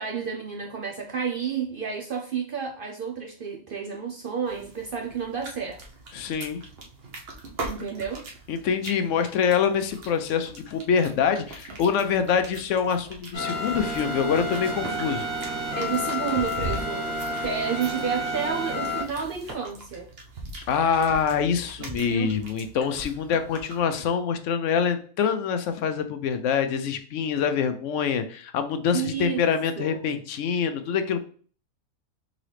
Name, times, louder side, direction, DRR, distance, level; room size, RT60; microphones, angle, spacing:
voice 1, 0.0-5.8 7.6-8.3 15.7-20.1 21.8-22.3 28.9-29.4 29.8-30.0, right 7 dB, 65° right, 0.5 m, -31 dB
sound 1, 4.5-24.0, right 2 dB, 50° right, 1.0 m, -41 dB
voice 2, 6.1-6.6 8.5-15.2 20.7-31.2, left 7 dB, 65° left, 0.8 m, -25 dB
sound 2, 13.3-19.5, left 1 dB, 25° right, 1.9 m, -30 dB
3.9 x 3.9 x 3.2 m
omnidirectional pair, 1.5 m